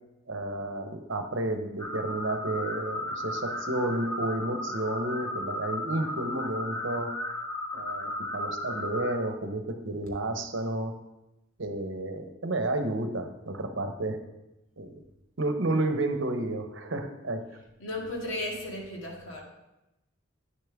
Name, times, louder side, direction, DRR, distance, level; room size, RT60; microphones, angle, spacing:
voice 1, 0.3-7.1 7.7-10.9 11.6-14.2 14.8-15.0 15.4-17.4, right 2 dB, 70° right, 6 dB, 0.9 m, -31 dB
sound 1, 1.8-9.2, left 1 dB, 15° left, 1.0 m, -35 dB
voice 2, 17.8-19.4, left 1 dB, 80° left, -1 dB, 2.1 m, -35 dB
9.2 x 7.1 x 3.5 m, 0.94 s
head